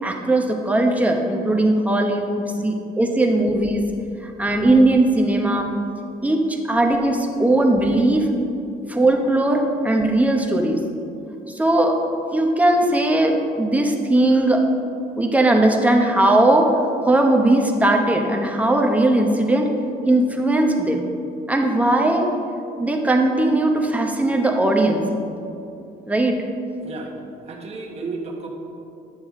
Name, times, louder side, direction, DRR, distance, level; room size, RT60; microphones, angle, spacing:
voice 1, 0.0-3.9 4.2-5.7 6.2-8.3 8.9-10.8 11.5-12.0 12.3-14.7 15.2-16.7 17.0-19.7 20.0-21.0 21.5-22.3 22.8-25.0 26.1-26.4, right 1 dB, 10° right, 2 dB, 0.9 m, -19 dB
voice 2, 26.8-27.2 27.5-28.5, right 3 dB, 40° right, 1 dB, 1.3 m, -32 dB
9.8 x 7.0 x 3.7 m, 2.6 s
cardioid pair, 110°, 17 cm